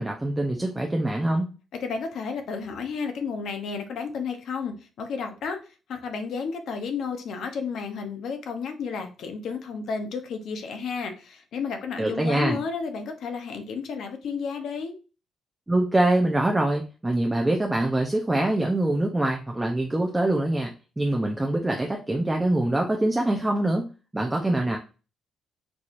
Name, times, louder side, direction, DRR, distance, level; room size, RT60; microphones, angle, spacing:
voice 1, 0.0-1.5 12.0-12.6 15.7-23.9 24.1-24.8, right 1 dB, 15° right, 1 dB, 0.5 m, -24 dB
voice 2, 1.8-5.6 5.9-14.9, left 5 dB, 70° left, 5 dB, 0.7 m, -32 dB
4.7 x 2.7 x 2.5 m, 0.34 s
cardioid pair, 90°, 0 cm